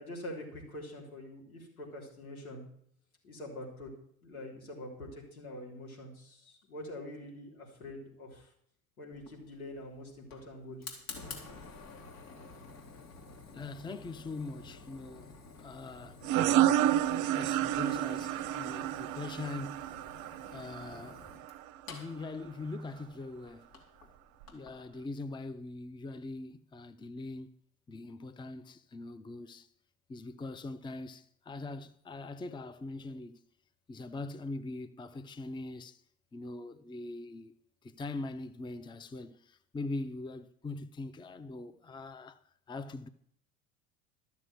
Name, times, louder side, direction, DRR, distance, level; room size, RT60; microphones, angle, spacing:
voice 1, 0.0-2.6 3.2-4.0 4.2-8.5 9.0-11.0, left 1 dB, 85° left, 3.5 m, -45 dB
Fire, 9.1-24.8, left 4 dB, 70° left, 3.1 m, -51 dB
voice 2, 13.5-15.3 15.6-16.2 17.3-19.8 20.5-21.3 21.9-23.7 24.5-27.5 27.9-29.7 30.1-33.4 33.9-36.0 36.3-37.5 37.8-42.4 42.7-43.1, left 2 dB, 10° left, 0.6 m, -42 dB
sound 1, 16.2-21.6, right 12 dB, 45° right, 0.7 m, -30 dB
12.5 x 7.1 x 7.7 m
figure-of-eight pair, 65°, 42 cm